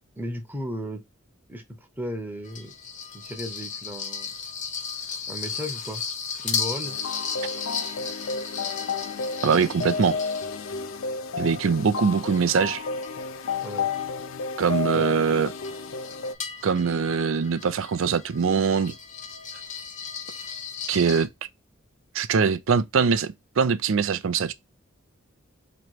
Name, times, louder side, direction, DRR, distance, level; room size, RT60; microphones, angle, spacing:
voice 1, 0.2-1.0 1.5-2.7 3.1-4.3 5.3-6.0 6.4-7.0 13.6-13.9 14.9-15.1, equal, 10° right, 0.8 m, -35 dB
sound 1, 2.4-11.0 11.5-21.3, left 6 dB, 35° left, 0.8 m, -36 dB
sound 2, 6.8-16.3, left 4 dB, 70° left, 0.5 m, -32 dB
voice 2, 9.4-10.2 11.4-12.8 14.6-15.5 16.6-18.9 20.9-21.3 22.1-24.5, right 5 dB, 65° right, 0.4 m, -22 dB
3.1 x 3.0 x 4.5 m
head